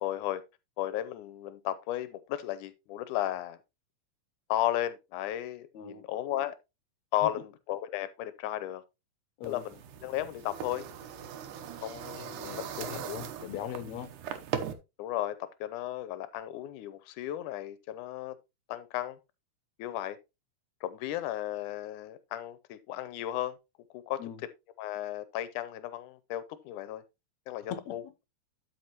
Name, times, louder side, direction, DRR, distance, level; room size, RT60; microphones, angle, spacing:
voice 1, 0.0-0.4 0.8-3.6 4.5-6.6 7.1-8.8 9.4-10.9 11.8-13.0 15.0-18.4 18.7-19.2 19.8-20.2 20.8-23.6 23.9-24.2 24.8-27.0 27.5-28.0, left 13 dB, 90° left, 2.1 m, -34 dB
sound 1, 9.4-14.7, right 9 dB, 85° right, 2.4 m, -40 dB
voice 2, 12.1-14.1 24.2-24.4 27.7-28.1, left 10 dB, 70° left, 2.0 m, -40 dB
12.5 x 5.5 x 3.0 m
omnidirectional pair, 3.6 m